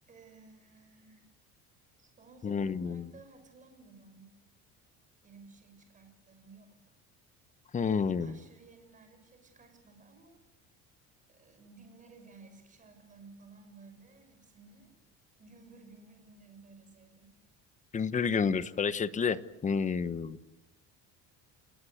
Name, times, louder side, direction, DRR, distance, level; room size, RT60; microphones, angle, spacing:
voice 1, 0.1-1.3 2.0-4.3 5.2-6.9 7.8-10.4 11.3-14.9 15.4-17.3, right 4 dB, 25° right, 7 dB, 6.4 m, -56 dB
voice 2, 2.4-3.1 7.7-8.4 17.9-20.4, left 6 dB, 25° left, 13 dB, 1.1 m, -30 dB
30.0 x 18.5 x 8.0 m, 0.94 s
cardioid pair, 140°, 30 cm